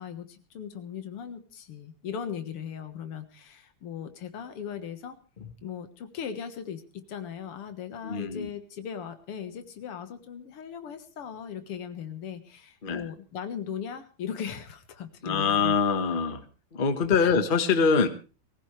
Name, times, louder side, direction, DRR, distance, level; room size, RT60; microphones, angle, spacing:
voice 1, 0.0-5.2 5.6-15.7 17.2-17.4, left 8 dB, 85° left, 9 dB, 2.4 m, -38 dB
voice 2, 8.0-8.5 12.8-13.1 15.2-16.4 16.7-18.1, left 5 dB, 30° left, 9 dB, 1.2 m, -24 dB
22.0 x 15.5 x 3.3 m, 0.34 s
omnidirectional pair, 2.4 m